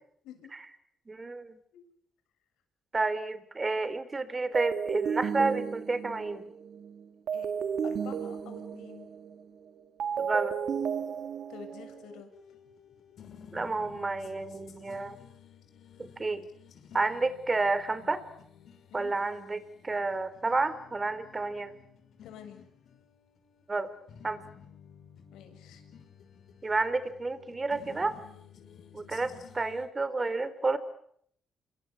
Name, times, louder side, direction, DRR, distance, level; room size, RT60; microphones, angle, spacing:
voice 1, 1.1-1.6 2.9-6.5 10.2-10.6 13.5-15.2 16.0-16.4 16.9-18.2 18.9-21.7 23.7-23.9 24.2-24.4 26.6-28.2 28.9-30.8, right 3 dB, 25° right, 14 dB, 3.7 m, -30 dB
sound 1, 4.5-12.2, right 7 dB, 65° right, 1.6 m, -34 dB
voice 2, 7.8-9.1 11.5-12.3 18.9-19.2 22.2-22.6 25.3-25.9, left 8 dB, 85° left, 7 dB, 7.6 m, -48 dB
sound 2, 12.3-29.9, left 8 dB, 65° left, 5.7 m, -54 dB
28.0 x 24.0 x 8.6 m, 0.69 s
cardioid pair, 90°, 0 cm